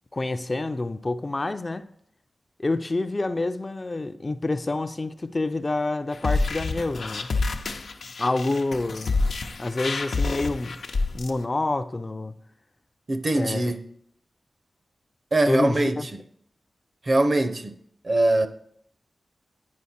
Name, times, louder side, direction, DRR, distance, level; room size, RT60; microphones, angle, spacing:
voice 1, 0.1-1.9 2.6-7.3 8.2-9.2 9.6-10.7 11.1-12.3 13.3-13.7 15.5-16.1, left 2 dB, 35° left, 0.4 m, -27 dB
sound 1, 6.1-11.3, left 3 dB, 85° left, 0.6 m, -27 dB
voice 2, 13.1-13.8 15.3-16.2 17.0-17.7 18.0-18.5, right 2 dB, 45° right, 0.6 m, -22 dB
9.5 x 5.1 x 4.2 m
wide cardioid pair, 85°, 0 cm